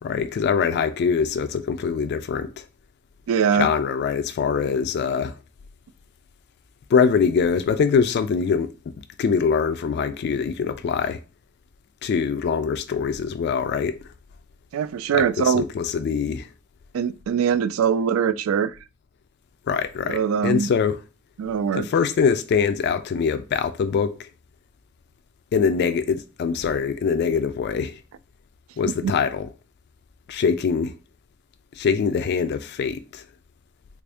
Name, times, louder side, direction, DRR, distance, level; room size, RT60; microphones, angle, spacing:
voice 1, 0.0-2.6 3.5-5.3 6.9-8.9 9.2-11.2 12.0-14.0 15.1-16.5 19.7-21.0 21.7-24.3 25.5-28.0 28.8-29.5 30.3-30.9 31.8-33.2, left 6 dB, 55° left, 0.3 m, -23 dB
voice 2, 3.3-3.7 14.7-15.6 16.9-18.7 20.1-20.7 21.4-21.9 28.8-29.1, right 7 dB, 85° right, 0.3 m, -22 dB
3.4 x 2.6 x 3.3 m
head